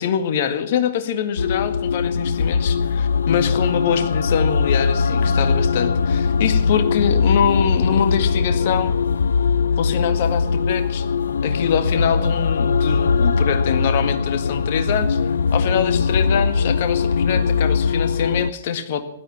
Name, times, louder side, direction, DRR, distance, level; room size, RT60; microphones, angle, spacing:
voice 1, 0.0-8.9 9.8-11.0 11.4-15.2 15.5-19.0, left 8 dB, 50° left, 9 dB, 1.8 m, -24 dB
sound 1, 1.4-18.5, left 5 dB, 70° left, 0.5 m, -20 dB
16.0 x 12.5 x 5.8 m, 0.81 s
figure-of-eight pair, 115°, 0 cm